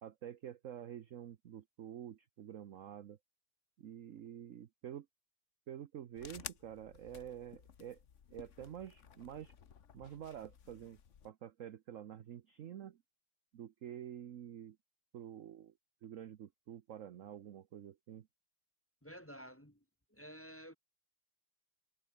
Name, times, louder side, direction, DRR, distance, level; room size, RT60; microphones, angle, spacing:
voice 1, 0.0-3.2 3.8-5.1 5.7-8.0 8.3-9.6 9.9-11.0 11.2-13.0 13.5-14.8 15.1-15.7 16.0-18.3, right 10 dB, 60° right, 0.8 m, -48 dB
sound 1, 6.2-11.3, left 8 dB, 45° left, 1.2 m, -54 dB
voice 2, 19.0-19.8 20.1-20.8, equal, 5° left, 2.1 m, -52 dB
omnidirectional pair, 2.2 m